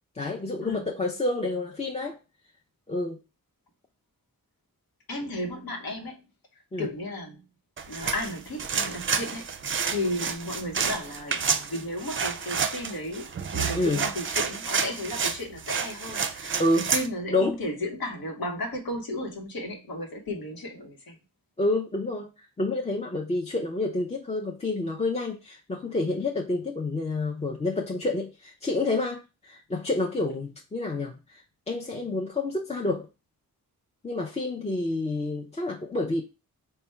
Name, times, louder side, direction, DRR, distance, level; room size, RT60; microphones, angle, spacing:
voice 1, 0.2-2.2 2.9-3.2 6.7-6.9 13.7-14.0 16.6-16.9 17.3-17.6 21.6-22.3 22.6-31.4 31.7-33.1 34.0-36.2, left 2 dB, 20° left, 0 dB, 0.5 m, -28 dB
voice 2, 5.1-6.2 6.8-7.4 7.9-16.6 16.9-21.2, left 1 dB, 80° left, 1 dB, 1.0 m, -34 dB
sound 1, 7.8-17.1, right 6 dB, 35° right, 0.4 m, -29 dB
3.4 x 2.2 x 4.3 m, 0.29 s
cardioid pair, 75°, 35 cm